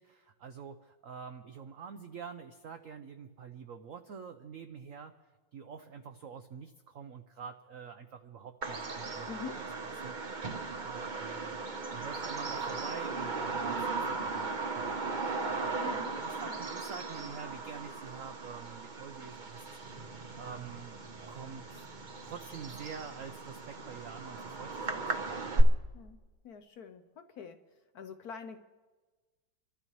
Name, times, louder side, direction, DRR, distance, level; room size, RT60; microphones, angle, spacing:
voice 1, 0.0-5.1 5.5-9.5 9.8-10.2 10.7-11.6 11.9-21.0 21.3-21.9 22.2-25.7, right 6 dB, 80° right, 7 dB, 0.7 m, -47 dB
Bird vocalization bird call bird song, 8.6-25.6, right 3 dB, 40° right, 0.6 m, -36 dB
voice 2, 9.3-9.7 15.8-16.1 16.4-16.6 25.9-28.6, left 6 dB, 65° left, 8 dB, 1.0 m, -45 dB
29.0 x 12.5 x 3.1 m, 1.3 s
omnidirectional pair, 2.1 m